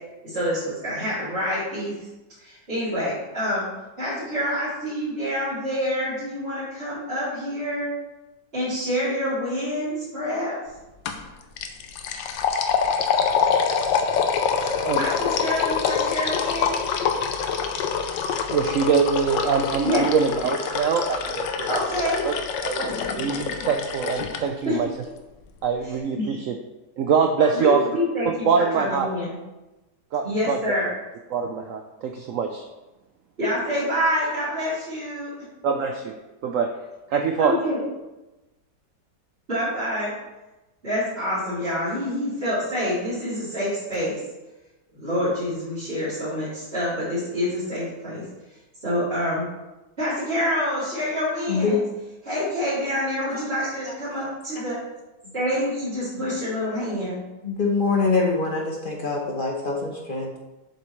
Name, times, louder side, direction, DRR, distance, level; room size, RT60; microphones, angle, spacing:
voice 1, 0.2-1.9 2.4-3.7 4.0-7.9 8.5-10.5 14.6-16.7 19.8-20.0 21.7-22.3 24.6-24.8 26.2-26.3 27.4-28.5 28.7-29.3 30.2-30.9 33.4-35.3 37.4-37.8 39.5-40.1 40.8-44.2 44.9-48.2 48.8-49.5 50.0-51.8 52.2-54.8 55.3-57.2, equal, 30° right, -14 dB, 3.1 m, -27 dB
sound 1, 11.1-11.3 11.6-24.4, left 6 dB, 90° left, 1.4 m, -25 dB
voice 2, 18.5-21.8 22.2-22.4 22.6-24.9 25.6-26.6 27.0-27.8 28.2-29.1 30.1-30.6 31.3-32.6 35.6-36.1 36.4-36.7 37.1-37.5, right 6 dB, 80° right, 5 dB, 0.7 m, -23 dB
voice 3, 51.5-51.9 53.3-53.4 53.8-53.9 56.2-56.3 57.4-60.4, left 4 dB, 40° left, 0 dB, 0.8 m, -24 dB
7.5 x 7.0 x 3.1 m, 1.1 s
omnidirectional pair, 1.9 m